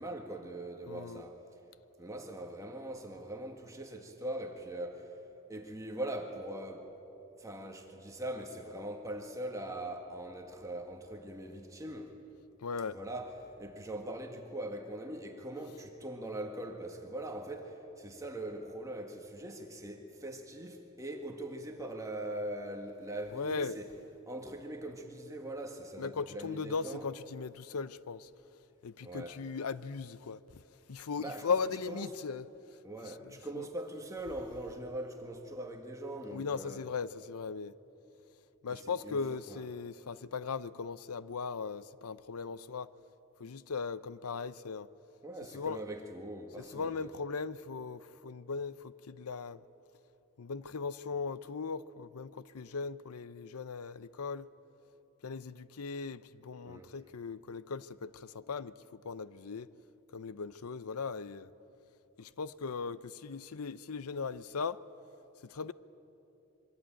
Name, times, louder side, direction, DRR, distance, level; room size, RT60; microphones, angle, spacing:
voice 1, 0.0-1.4 2.0-5.1 5.5-6.9 7.4-12.1 12.9-23.9 24.3-27.1 29.0-29.4 31.2-31.6 31.9-32.1 32.8-36.8 38.7-39.6 45.2-47.1 56.7-56.9, right 1 dB, 15° right, 3 dB, 1.7 m, -41 dB
voice 2, 0.9-1.2 12.6-13.0 23.3-23.8 26.0-28.3 28.8-30.4 30.9-32.5 33.0-33.7 36.3-37.8 38.6-42.9 43.4-44.9 45.5-45.8 46.6-49.6 50.4-54.5 55.2-59.7 60.1-61.5 62.2-64.8 65.4-65.7, left 5 dB, 90° left, 16 dB, 0.7 m, -38 dB
26.0 x 23.0 x 9.0 m, 2.9 s
head